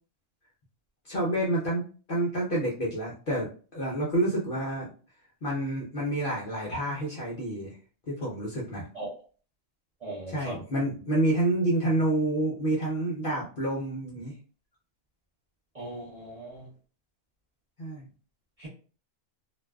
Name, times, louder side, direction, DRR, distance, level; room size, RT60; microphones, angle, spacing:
voice 1, 1.0-1.8 2.1-4.9 5.4-7.8 8.1-8.9 10.3-14.3 17.8-18.1, right 1 dB, 50° left, -4 dB, 0.7 m, -28 dB
voice 2, 10.0-10.6 15.7-16.7 18.6-18.7, right 1 dB, 35° right, -8 dB, 0.7 m, -39 dB
2.5 x 2.2 x 2.2 m, 0.38 s
omnidirectional pair, 1.4 m